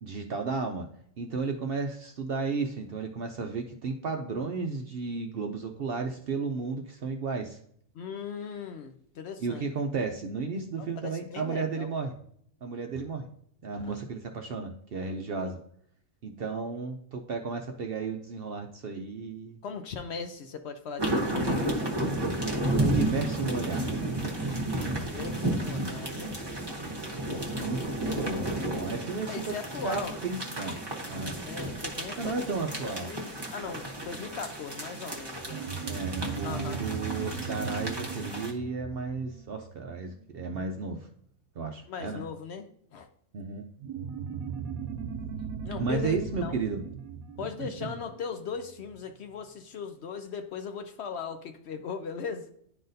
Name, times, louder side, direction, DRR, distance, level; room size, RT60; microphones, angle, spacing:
voice 1, 0.0-0.9 1.2-7.6 9.4-12.1 12.6-13.3 13.6-15.6 16.2-19.6 22.8-23.9 24.2-24.7 26.8-27.2 27.6-29.5 29.8-30.8 31.1-31.4 32.2-33.1 35.8-41.1 41.6-42.2 43.3-43.7 45.8-46.8 47.6-47.9, right 4 dB, 60° right, 4 dB, 0.6 m, -33 dB
voice 2, 7.9-9.6 10.8-11.9 13.8-14.0 15.4-15.5 19.6-22.3 22.6-22.9 24.8-26.3 27.6-28.4 29.3-30.2 31.4-35.6 36.4-36.8 41.9-42.7 42.9-43.1 45.6-46.6 47.4-52.5, left 6 dB, 65° left, 8 dB, 0.7 m, -39 dB
sound 1, 21.0-38.5, right 1 dB, 20° right, 0.9 m, -32 dB
sound 2, 35.5-40.4 43.8-48.7, right 6 dB, 90° right, 1.0 m, -37 dB
10.5 x 3.9 x 2.6 m, 0.67 s
omnidirectional pair, 1.4 m